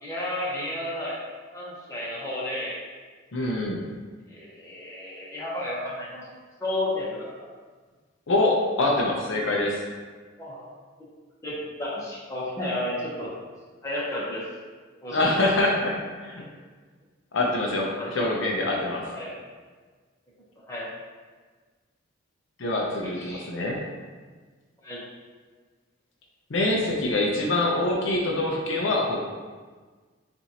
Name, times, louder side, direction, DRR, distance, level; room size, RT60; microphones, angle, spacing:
voice 1, 0.0-1.2 1.5-2.8 4.3-6.3 6.6-7.5 10.4-10.7 11.4-13.3 13.8-14.4 15.0-15.7 17.9-18.3 19.1-19.4 20.6-20.9 23.0-23.5 24.8-25.0, left 1 dB, 15° left, -7 dB, 1.0 m, -32 dB
voice 2, 3.3-3.8 8.3-9.8 15.1-15.9 16.2-16.4 17.3-19.1 22.6-23.8 26.5-29.3, left 2 dB, 65° left, -1 dB, 0.6 m, -25 dB
7.0 x 2.6 x 2.8 m, 1.4 s
head